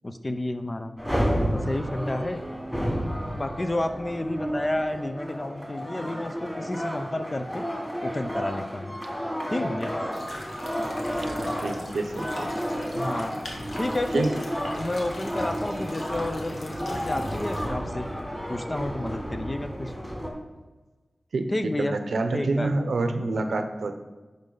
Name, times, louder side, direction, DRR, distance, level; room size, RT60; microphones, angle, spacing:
voice 1, 0.0-1.0 1.5-2.4 3.4-7.7 8.0-9.0 9.5-10.0 12.9-13.3 13.7-14.3 14.7-18.1 18.5-19.9 21.5-22.0 22.3-22.8 23.1-23.7, left 1 dB, 30° left, 8 dB, 0.6 m, -31 dB
sound 1, 1.0-20.3, equal, 5° left, 2.6 m, -31 dB
sound 2, 10.1-17.7, left 1 dB, 75° left, 1.5 m, -43 dB
voice 2, 11.2-12.5 14.1-14.3 21.3-21.5 21.8-24.0, right 3 dB, 90° right, 7 dB, 0.7 m, -27 dB
10.0 x 5.4 x 3.9 m, 1.2 s
wide cardioid pair, 60°, 0 cm